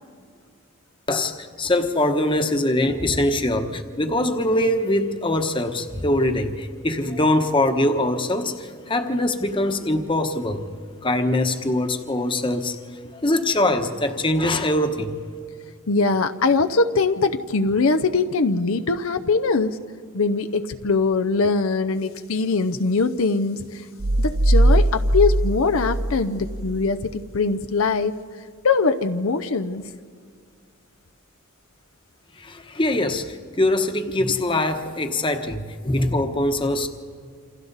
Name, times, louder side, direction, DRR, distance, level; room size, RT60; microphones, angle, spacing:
voice 1, 1.1-10.7 11.0-12.8 13.1-15.1 32.4-36.9, left 1 dB, 25° left, 6 dB, 1.1 m, -23 dB
voice 2, 15.9-19.8 20.1-23.8 24.2-28.2 28.6-29.8, left 4 dB, 70° left, 7 dB, 0.7 m, -22 dB
sound 1, 24.0-26.8, right 1 dB, 55° right, 0.8 m, -20 dB
28.5 x 26.5 x 4.1 m, 2.1 s
head